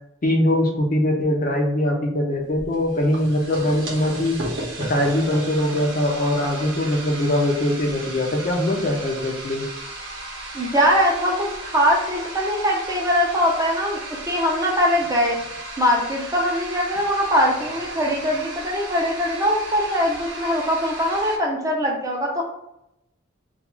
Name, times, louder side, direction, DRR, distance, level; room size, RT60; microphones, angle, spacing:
voice 1, 0.2-4.4 4.9-9.7, left 1 dB, 40° left, 1 dB, 0.4 m, -22 dB
sound 1, 2.6-21.4, right 2 dB, 60° right, 0.7 m, -35 dB
voice 2, 10.5-14.0 14.3-15.4 15.8-22.4, equal, 15° right, -2 dB, 0.4 m, -21 dB
2.3 x 2.3 x 3.0 m, 0.84 s
head